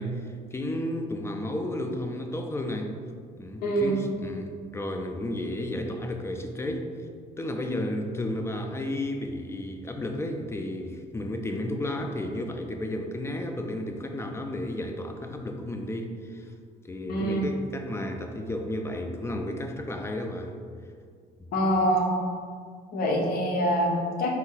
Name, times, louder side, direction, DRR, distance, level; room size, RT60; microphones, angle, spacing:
voice 1, 0.0-3.0 3.4-6.9 7.4-16.5 16.8-20.5, left 1 dB, 15° left, 5 dB, 0.4 m, -32 dB
voice 2, 3.6-4.0 17.1-17.4 21.5-22.0 22.9-24.3, equal, 65° left, 0 dB, 0.8 m, -25 dB
4.1 x 2.7 x 3.9 m, 2.1 s
cardioid pair, 110°, 17 cm